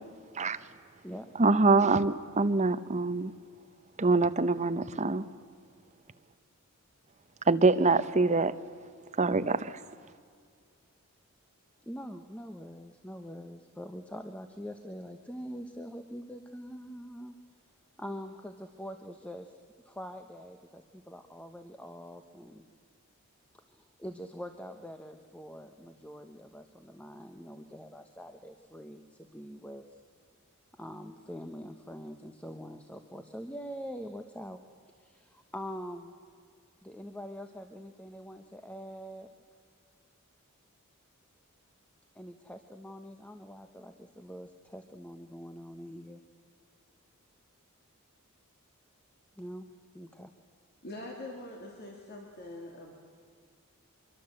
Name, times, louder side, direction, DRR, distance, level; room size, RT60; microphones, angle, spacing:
voice 1, 1.4-3.3 4.0-5.2 7.5-8.5 9.2-9.8, right 3 dB, 30° right, 12 dB, 0.8 m, -25 dB
voice 2, 11.8-17.4 18.0-19.6 19.8-22.7 23.5-30.0 30.8-34.6 34.9-36.1 36.8-39.3 42.1-46.2 49.4-49.7 49.9-50.3, equal, 5° left, 7 dB, 0.9 m, -44 dB
voice 3, 50.8-52.9, left 1 dB, 45° left, 1 dB, 2.9 m, -43 dB
24.5 x 23.5 x 7.7 m, 2.2 s
head